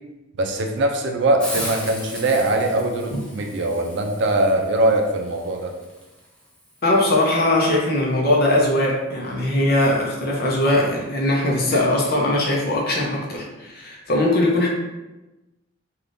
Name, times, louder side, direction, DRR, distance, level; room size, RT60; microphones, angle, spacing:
voice 1, 0.4-5.7, right 2 dB, 65° right, 3 dB, 0.4 m, -21 dB
Hiss, 1.4-7.0, equal, 5° left, 0.6 m, -37 dB
voice 2, 6.8-14.7, left 1 dB, 55° left, -2 dB, 0.7 m, -20 dB
3.4 x 2.4 x 2.6 m, 1.1 s
head